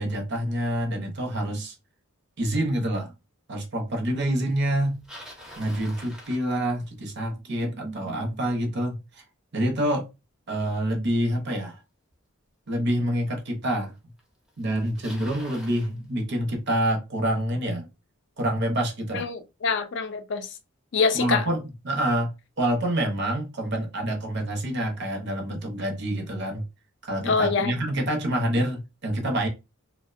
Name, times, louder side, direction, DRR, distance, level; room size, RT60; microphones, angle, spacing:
voice 1, 0.0-1.7 2.4-3.1 3.5-5.0 5.6-9.2 9.5-10.1 10.5-11.8 12.7-14.0 14.6-17.9 18.4-19.3 21.2-26.6 27.0-29.5, right 1 dB, 55° right, 0.6 m, -27 dB
Bicycle, 4.7-7.1 12.1-12.2 13.1-13.2 14.2-14.3 14.5-15.9, equal, 5° right, 0.5 m, -45 dB
voice 2, 19.1-20.5 20.9-21.4 27.2-27.7, left 5 dB, 55° left, 0.4 m, -25 dB
2.5 x 2.1 x 2.4 m
head